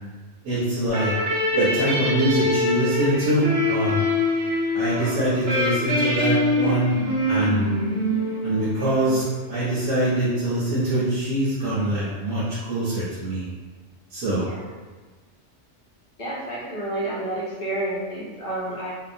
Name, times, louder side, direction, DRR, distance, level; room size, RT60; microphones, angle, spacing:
voice 1, 0.4-1.1 1.5-4.0 4.7-6.9 7.3-7.7 8.4-13.5 14.1-14.4, right 1 dB, 90° right, -9 dB, 1.0 m, -24 dB
sound 1, 0.9-9.4, left 1 dB, 60° right, 0.9 m, -24 dB
voice 2, 16.2-18.9, right 1 dB, 50° left, -7 dB, 0.6 m, -29 dB
2.7 x 2.0 x 2.5 m, 1.3 s
omnidirectional pair, 1.2 m